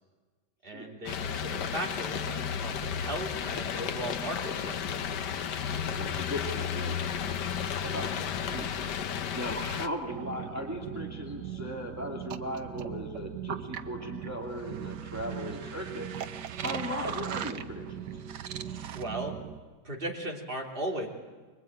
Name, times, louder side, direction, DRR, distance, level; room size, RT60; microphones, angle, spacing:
voice 1, 0.6-5.0 18.9-19.4 19.8-21.1, right 1 dB, 30° right, -1 dB, 3.6 m, -37 dB
sound 1, 1.1-9.9, left 8 dB, 85° left, 1.6 m, -33 dB
voice 2, 5.9-7.0 7.8-9.0 9.3-16.1 16.6-18.0, equal, 10° right, 1 dB, 2.6 m, -37 dB
sound 2, 10.1-19.6, right 9 dB, 80° right, 1.6 m, -39 dB
25.0 x 23.0 x 9.0 m, 1.4 s
omnidirectional pair, 1.8 m